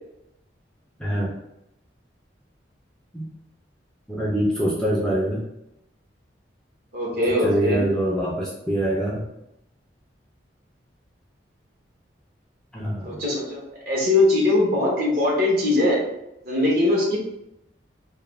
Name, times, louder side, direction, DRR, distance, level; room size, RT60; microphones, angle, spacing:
voice 1, 1.0-1.3 3.1-3.3 4.1-5.4 7.4-9.2 12.7-13.2, right 1 dB, 5° left, -5 dB, 0.3 m, -24 dB
voice 2, 6.9-7.8 13.0-16.0 16.4-17.2, left 2 dB, 50° right, -3 dB, 0.8 m, -21 dB
2.3 x 2.1 x 3.0 m, 0.85 s
head